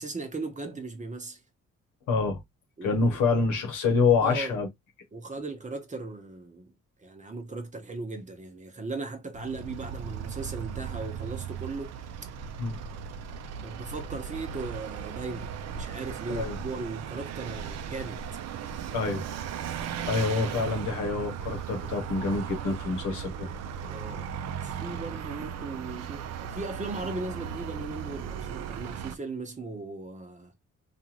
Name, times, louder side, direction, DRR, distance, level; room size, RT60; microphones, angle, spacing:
voice 1, 0.0-1.4 2.8-3.2 4.2-4.6 5.1-6.7 7.0-11.9 13.6-18.2 23.8-24.3 24.6-30.5, right 3 dB, 25° right, 0.9 m, -37 dB
voice 2, 2.1-2.4 2.8-4.7 12.6-12.8 16.3-16.6 18.9-19.3 20.1-23.5, left 4 dB, 85° left, 1.0 m, -26 dB
Vehicle, 9.3-29.2, right 8 dB, 60° right, 0.5 m, -37 dB
2.5 x 2.5 x 2.9 m
cardioid pair, 90°, 30 cm